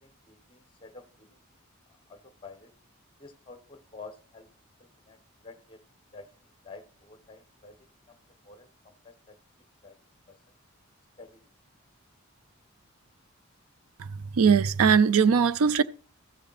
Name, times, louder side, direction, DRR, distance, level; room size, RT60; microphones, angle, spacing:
voice 1, 0.0-1.4 2.1-2.7 3.2-4.5 4.8-5.8 6.1-9.4 9.8-10.0 10.3-10.4 11.2-11.5, left 3 dB, 25° left, 1.1 m, -50 dB
voice 2, 14.0-15.8, right 6 dB, 85° right, 0.4 m, -21 dB
14.5 x 6.7 x 4.1 m
head